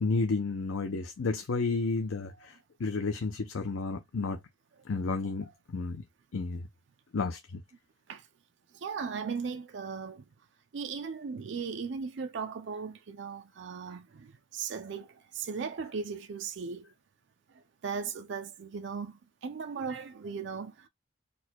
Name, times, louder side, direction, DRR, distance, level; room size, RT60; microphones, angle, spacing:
voice 1, 0.0-4.4 4.9-6.0 6.3-6.6 7.1-7.6, left 3 dB, 90° left, 0.5 m, -31 dB
voice 2, 8.7-10.2 10.7-16.9 17.8-20.9, right 5 dB, 65° right, 0.4 m, -37 dB
4.2 x 2.2 x 4.4 m
head